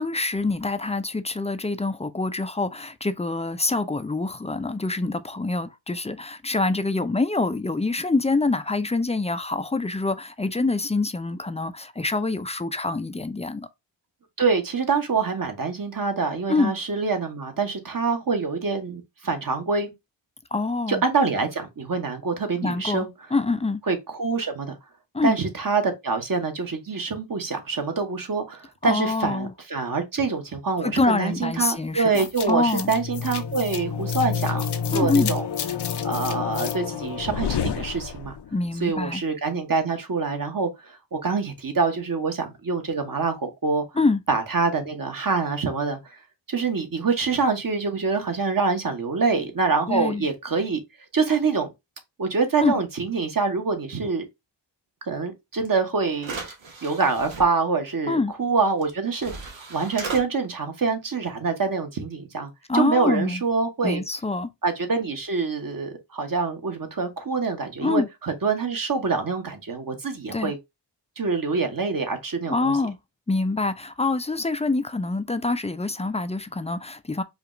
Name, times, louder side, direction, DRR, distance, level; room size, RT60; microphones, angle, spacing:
voice 1, 0.0-13.7 16.5-16.7 20.5-21.0 22.6-23.8 25.1-25.4 28.8-29.5 30.8-32.9 34.9-35.3 38.5-39.2 44.0-44.2 49.9-50.3 52.6-52.8 58.1-58.3 62.7-63.4 63.8-64.5 67.8-68.1 70.3-70.5 72.5-73.0 73.3-77.2, left 3 dB, 15° left, 0.4 m, -25 dB
voice 2, 14.4-19.9 20.9-23.4 23.8-24.7 25.2-35.8 36.0-38.4 38.7-43.8 44.3-46.2 46.5-50.8 51.1-51.7 52.2-54.2 55.0-56.4 56.8-64.0 64.6-70.6 71.2-72.8, right 4 dB, 45° right, 1.1 m, -25 dB
sound 1, 32.1-38.5, left 7 dB, 60° left, 0.6 m, -29 dB
sound 2, 55.6-55.7 56.2-57.4 58.8-58.9 59.2-60.2, right 4 dB, 85° right, 1.1 m, -36 dB
4.9 x 2.4 x 3.0 m
cardioid pair, 50°, 45 cm